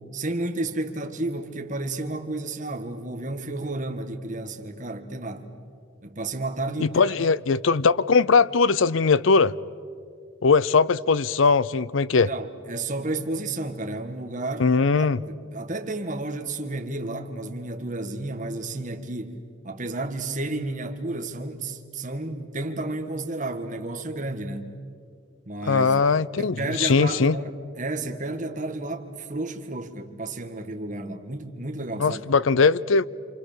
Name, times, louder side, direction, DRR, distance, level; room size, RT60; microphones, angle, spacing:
voice 1, 0.0-5.5 6.0-7.2 12.3-14.7 15.0-19.4 19.6-24.7 25.5-26.0 26.4-32.2, right 2 dB, 40° right, 1.7 m, -32 dB
voice 2, 6.8-9.5 10.4-12.3 14.6-15.2 25.6-27.4 32.0-33.1, left 4 dB, 75° left, 0.6 m, -20 dB
28.5 x 26.5 x 6.8 m
head